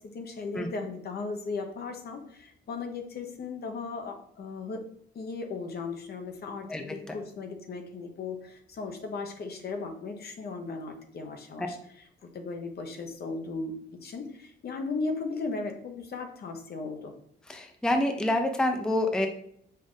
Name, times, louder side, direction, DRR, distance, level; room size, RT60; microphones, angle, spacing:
voice 1, 0.0-4.9 5.1-11.8 12.2-17.1, left 4 dB, 55° left, 5 dB, 0.8 m, -36 dB
voice 2, 6.7-7.1 11.6-11.7 17.5-19.3, left 1 dB, 5° left, 4 dB, 0.5 m, -27 dB
5.3 x 2.5 x 3.7 m, 0.67 s
cardioid pair, 90°, 20 cm